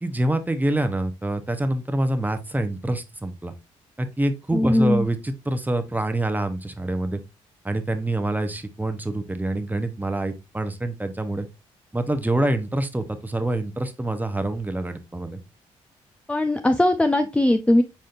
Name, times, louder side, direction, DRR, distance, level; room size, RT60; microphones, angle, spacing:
voice 1, 0.0-3.5 4.0-7.2 7.6-11.5 11.9-15.4, right 1 dB, 10° right, 0.8 m, -26 dB
voice 2, 4.5-5.1 16.3-17.8, left 1 dB, 5° left, 0.5 m, -19 dB
4.9 x 4.2 x 2.4 m
hypercardioid pair, 45°, 15 cm